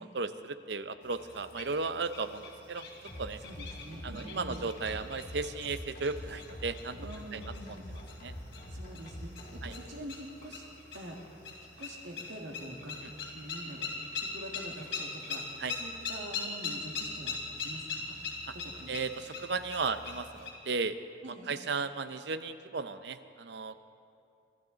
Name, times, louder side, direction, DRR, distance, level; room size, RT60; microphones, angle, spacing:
voice 1, 0.1-2.4 2.7-2.8 3.2-3.4 4.0-7.0 7.3-7.4 8.2-8.3 9.6-9.7 15.6-15.7 18.5-18.6 18.9-21.0 21.3-23.8, right 4 dB, 60° right, 11 dB, 0.6 m, -35 dB
sound 1, 1.0-20.5, left 4 dB, 75° left, 3.1 m, -42 dB
sound 2, 3.1-9.9, equal, 50° left, 2.4 m, -45 dB
voice 2, 3.4-4.7 7.0-8.0 8.7-10.6 10.9-11.4 11.8-13.0 13.3-13.9 14.1-17.4 17.6-18.2 18.5-19.0 21.2-21.6, right 1 dB, 75° right, 1 dB, 1.9 m, -45 dB
25.0 x 12.5 x 4.0 m, 2.5 s
head